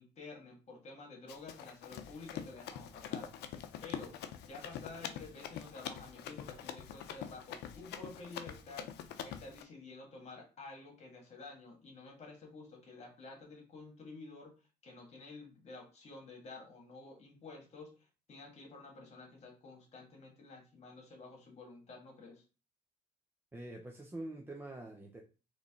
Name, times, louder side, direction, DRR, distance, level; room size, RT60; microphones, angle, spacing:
voice 1, 0.0-3.3 3.8-4.1 4.5-8.9 9.2-14.5 14.8-22.4, left 3 dB, 40° left, 1.9 m, -51 dB
Run, 1.3-9.6, left 9 dB, 80° left, 0.6 m, -45 dB
voice 2, 23.5-25.2, right 1 dB, 15° right, 0.6 m, -45 dB
4.0 x 3.2 x 3.7 m
cardioid pair, 110°, 17 cm